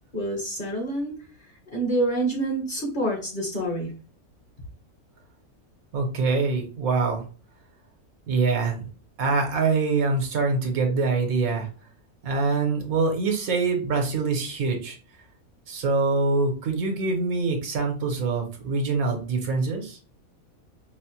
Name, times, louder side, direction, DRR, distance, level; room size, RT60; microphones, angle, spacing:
voice 1, 0.1-1.1 1.7-3.9, right 1 dB, 40° left, 0 dB, 1.0 m, -27 dB
voice 2, 5.9-7.2 8.3-8.8 9.2-11.7 12.2-15.0 15.7-20.0, right 4 dB, 80° right, 3 dB, 1.3 m, -24 dB
5.0 x 2.1 x 2.8 m, 0.37 s
omnidirectional pair, 1.5 m